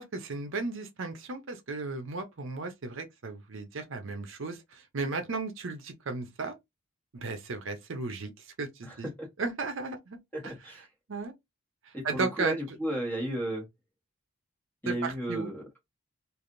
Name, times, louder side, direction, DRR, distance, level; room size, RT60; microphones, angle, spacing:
voice 1, 0.0-6.5 7.1-8.3 8.6-9.1 9.4-10.2 10.4-10.5 11.1-11.3 12.0-12.5 14.9-15.5, right 3 dB, 60° right, 0.6 m, -35 dB
voice 2, 8.8-9.3 10.3-10.8 11.9-13.7 14.8-15.7, right 1 dB, 10° left, 1.3 m, -34 dB
3.3 x 2.5 x 2.5 m
head